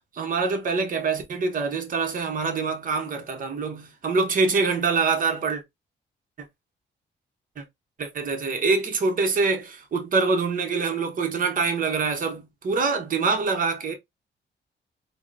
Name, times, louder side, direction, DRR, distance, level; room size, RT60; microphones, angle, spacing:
voice 1, 0.1-5.6 7.6-7.7 8.0-13.9, right 4 dB, 45° right, 0.7 m, -25 dB
3.6 x 2.0 x 2.4 m
cardioid pair, 125°, 20 cm